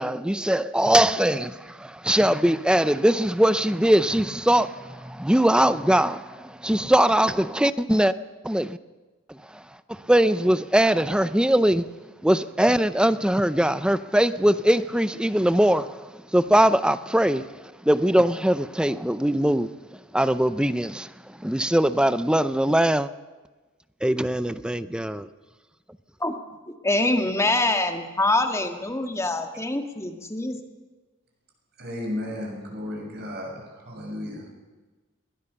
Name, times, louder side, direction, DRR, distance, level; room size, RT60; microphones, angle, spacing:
voice 1, 0.0-8.1 8.4-8.8 9.3-9.6 9.9-11.9 12.2-19.7 20.1-23.1 24.0-25.3, right 1 dB, 5° right, 0.5 m, -21 dB
voice 2, 26.8-30.6, left 2 dB, 15° left, 1.8 m, -24 dB
voice 3, 31.8-34.5, left 1 dB, 50° right, 6.8 m, -34 dB
22.0 x 17.5 x 6.9 m
head